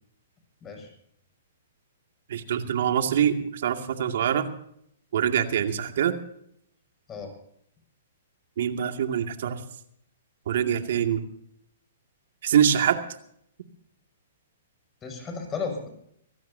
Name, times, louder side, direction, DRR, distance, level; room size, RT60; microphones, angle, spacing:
voice 1, 2.3-4.5 5.1-6.1 8.6-9.6 10.5-11.2 12.4-13.0, right 9 dB, 65° right, 6 dB, 2.3 m, -24 dB
voice 2, 15.0-15.9, left 5 dB, 20° left, 3 dB, 6.7 m, -34 dB
25.0 x 16.5 x 2.8 m, 0.70 s
hypercardioid pair, 130°, 0 cm